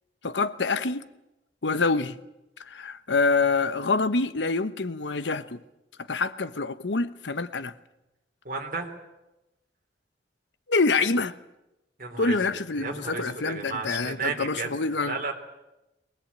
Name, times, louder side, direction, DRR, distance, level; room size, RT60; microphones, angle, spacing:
voice 1, 0.2-1.1 1.6-2.2 2.7-5.6 6.1-7.7 10.7-11.3 12.2-15.1, left 3 dB, 85° left, 1.0 m, -26 dB
voice 2, 8.5-8.9 12.0-14.7 15.0-15.3, right 4 dB, 50° right, 3.5 m, -33 dB
22.5 x 19.5 x 8.6 m
head